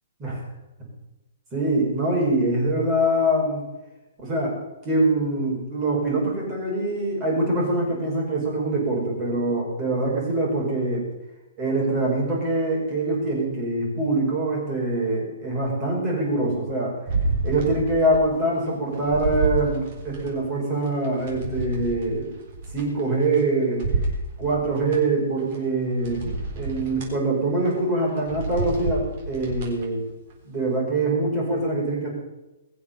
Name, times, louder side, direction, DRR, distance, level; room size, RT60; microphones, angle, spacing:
voice 1, 1.5-3.6 4.2-4.6 4.8-11.0 11.6-16.9 17.4-22.3 22.7-23.8 24.4-30.0 30.4-32.1, right 2 dB, 15° right, -3 dB, 5.3 m, -24 dB
sound 1, 17.1-18.3 18.7-20.3 20.8-23.4 23.8-25.0 25.5-25.6 26.0-27.1 27.6-27.8 28.2-29.8 30.3-30.4, right 2 dB, 35° right, 4.0 m, -29 dB
22.0 x 7.3 x 7.2 m, 1.0 s
hypercardioid pair, 175°, 0 cm